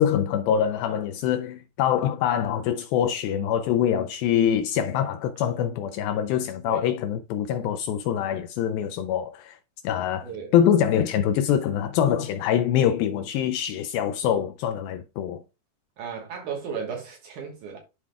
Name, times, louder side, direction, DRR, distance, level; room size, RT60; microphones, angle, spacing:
voice 1, 0.0-9.6 9.8-15.4, left 9 dB, 80° left, 2.2 m, -24 dB
voice 2, 10.2-10.5 16.0-17.8, right 6 dB, 65° right, 2.3 m, -35 dB
11.5 x 4.8 x 2.2 m
omnidirectional pair, 4.6 m